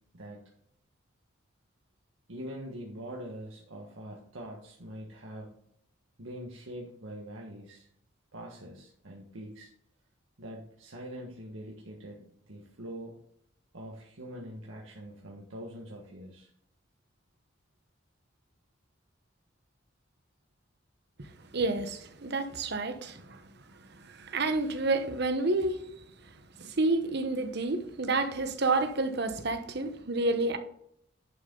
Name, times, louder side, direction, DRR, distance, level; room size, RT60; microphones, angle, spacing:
voice 1, 2.3-5.5 6.2-7.9 8.3-9.7 10.4-13.1 13.7-16.5, equal, 90° right, 1.6 m, -43 dB
voice 2, 21.2-23.4 24.0-25.8 26.6-30.6, right 2 dB, 60° right, 1.1 m, -29 dB
11.0 x 6.5 x 3.9 m
head